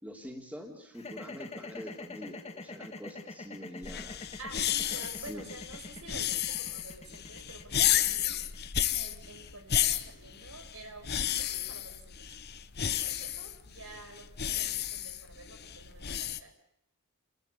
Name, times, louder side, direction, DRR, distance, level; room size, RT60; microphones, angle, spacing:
voice 1, 0.0-4.2 4.9-5.5, equal, 5° right, 1 dB, 3.5 m, -45 dB
sound 1, 0.9-11.1, left 3 dB, 30° left, 2.1 m, -45 dB
sound 2, 3.8-16.4, left 11 dB, 50° left, 1.0 m, -32 dB
voice 2, 4.4-8.4 8.9-12.3 12.8-16.5, right 2 dB, 75° right, 5 dB, 5.4 m, -49 dB
29.5 x 15.0 x 8.3 m, 0.75 s
head